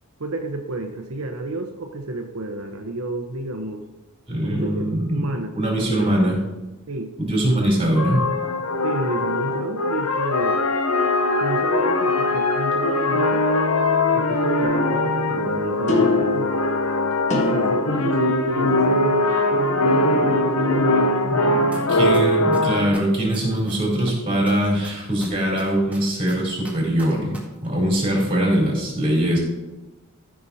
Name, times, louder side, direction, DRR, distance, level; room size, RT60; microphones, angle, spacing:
voice 1, 0.2-3.8 4.5-4.8 5.1-6.3 6.9-7.1 8.8-10.6 11.4-13.4 14.1-16.5 17.3-19.3 19.8-22.3, right 2 dB, 85° right, 3 dB, 1.0 m, -30 dB
voice 2, 4.3-5.2 5.5-6.4 7.2-8.3 21.9-27.4 27.6-29.4, right 1 dB, 25° right, -2 dB, 4.0 m, -22 dB
sound 1, 7.9-22.9, left 2 dB, 85° left, 1.1 m, -21 dB
sound 2, 14.6-19.1, left 2 dB, 35° left, 1.7 m, -27 dB
sound 3, 21.7-21.8 22.1-24.1 24.5-27.4 27.6-27.7, right 1 dB, 5° right, 1.9 m, -39 dB
14.0 x 6.1 x 4.2 m, 1.1 s
head